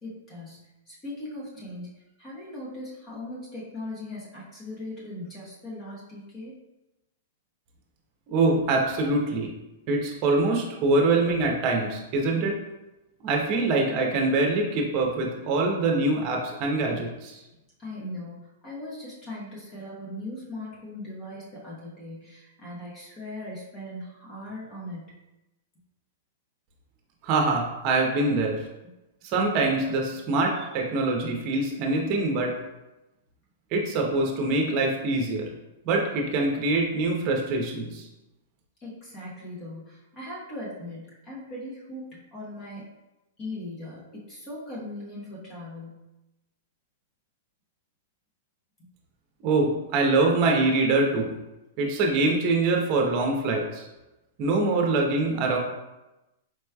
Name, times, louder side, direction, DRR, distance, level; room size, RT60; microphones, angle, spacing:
voice 1, 0.0-1.9 2.2-6.6 17.8-25.1 38.8-42.8 43.4-46.0, left 1 dB, 25° left, -5 dB, 1.0 m, -39 dB
voice 2, 8.3-9.5 9.9-12.6 13.2-17.4 27.2-28.6 29.2-32.5 33.7-35.5 35.8-38.1 49.4-51.3 51.8-53.9 54.4-55.6, right 2 dB, 35° right, 1 dB, 0.8 m, -24 dB
4.6 x 3.0 x 2.3 m, 0.98 s
hypercardioid pair, 150°, 0 cm